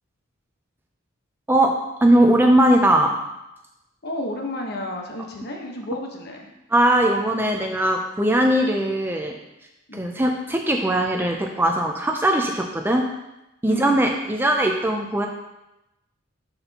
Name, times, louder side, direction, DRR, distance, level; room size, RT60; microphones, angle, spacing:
voice 1, 1.5-3.2 6.7-9.4 9.9-13.1 13.6-15.3, right 1 dB, 10° right, 2 dB, 0.4 m, -20 dB
voice 2, 4.0-6.5 9.9-10.2 13.7-14.0, left 1 dB, 50° left, 1 dB, 1.1 m, -32 dB
12.0 x 4.2 x 2.9 m, 0.93 s
head